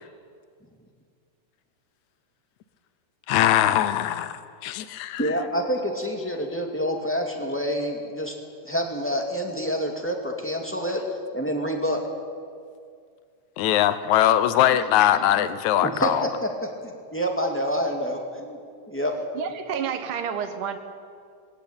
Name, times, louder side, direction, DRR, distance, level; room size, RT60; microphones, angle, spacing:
voice 1, 3.3-5.4 13.6-16.3, left 12 dB, 75° left, 13 dB, 2.2 m, -21 dB
voice 2, 5.2-8.3 8.6-11.0 11.3-12.0 15.8-16.5 16.8-18.6 18.9-19.2, equal, 5° left, 2 dB, 1.8 m, -27 dB
voice 3, 19.3-20.8, right 7 dB, 85° right, 7 dB, 3.0 m, -30 dB
20.5 x 17.0 x 8.8 m, 2.2 s
omnidirectional pair, 3.5 m